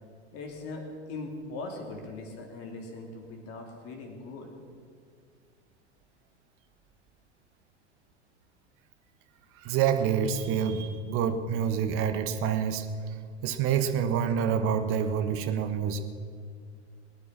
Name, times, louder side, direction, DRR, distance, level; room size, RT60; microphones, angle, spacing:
voice 1, 0.3-4.5, left 3 dB, 40° left, 2 dB, 3.2 m, -40 dB
voice 2, 9.6-13.1 13.4-16.0, right 7 dB, 35° right, 9 dB, 1.3 m, -27 dB
21.0 x 9.9 x 6.0 m, 2.2 s
figure-of-eight pair, 85°, 35 cm